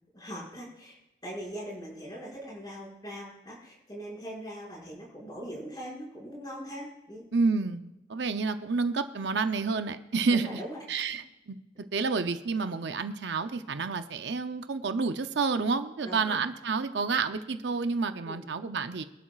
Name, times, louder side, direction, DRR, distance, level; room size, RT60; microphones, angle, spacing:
voice 1, 0.1-7.3 10.3-10.8 16.0-16.4 18.2-18.5, equal, 20° left, -4 dB, 5.8 m, -41 dB
voice 2, 7.3-10.6 10.9-11.6 11.9-19.0, right 4 dB, 75° right, 8 dB, 0.6 m, -29 dB
24.5 x 11.0 x 2.4 m, 0.94 s
head